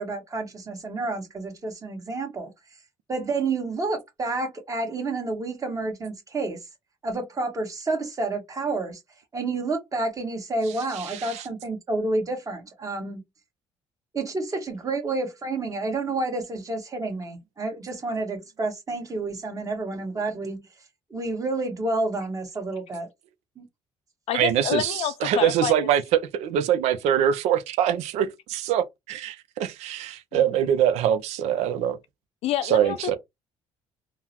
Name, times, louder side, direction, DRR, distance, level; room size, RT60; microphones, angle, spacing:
voice 1, 0.0-2.5 3.1-6.6 7.0-9.0 9.3-13.2 14.1-20.6 21.1-23.1 23.6-23.7, right 2 dB, 30° right, 1.3 m, -29 dB
voice 2, 11.1-11.4 24.3-32.0 32.6-33.2, right 10 dB, 80° right, 0.4 m, -24 dB
voice 3, 24.3-25.9 30.3-30.4 32.4-33.2, left 10 dB, 65° left, 0.4 m, -28 dB
3.7 x 2.0 x 2.9 m
cardioid pair, 90°, 11 cm